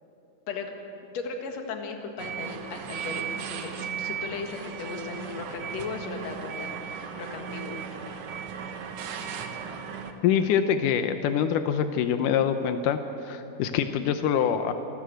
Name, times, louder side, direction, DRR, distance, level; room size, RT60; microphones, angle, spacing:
voice 1, 1.0-7.8, left 4 dB, 60° left, 3 dB, 2.8 m, -37 dB
sound 1, 2.2-10.1, right 7 dB, 60° right, 1.9 m, -36 dB
voice 2, 10.2-14.7, left 8 dB, 90° left, 8 dB, 2.4 m, -25 dB
26.0 x 13.5 x 7.9 m, 2.9 s
omnidirectional pair, 3.7 m